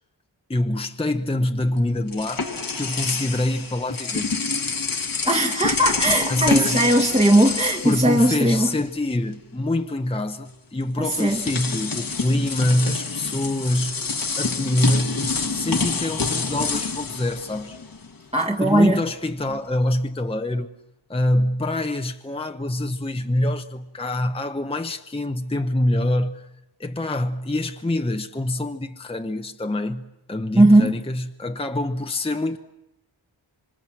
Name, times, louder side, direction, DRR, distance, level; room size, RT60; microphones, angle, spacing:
voice 1, 0.5-2.5 2.7-4.3 6.3-6.9 7.8-14.0 14.4-17.8 18.6-20.7 21.1-26.5 26.8-30.0 30.3-32.6, left 1 dB, 10° left, 0.9 m, -25 dB
sound 1, 1.7-8.9 9.2-9.4 10.5-10.6 11.0-18.2, left 4 dB, 45° left, 1.4 m, -28 dB
voice 2, 5.2-8.8 11.0-11.4 18.3-19.0 30.5-30.9, right 1 dB, 15° right, 1.4 m, -18 dB
26.5 x 25.5 x 7.6 m
wide cardioid pair, 100°, 48 cm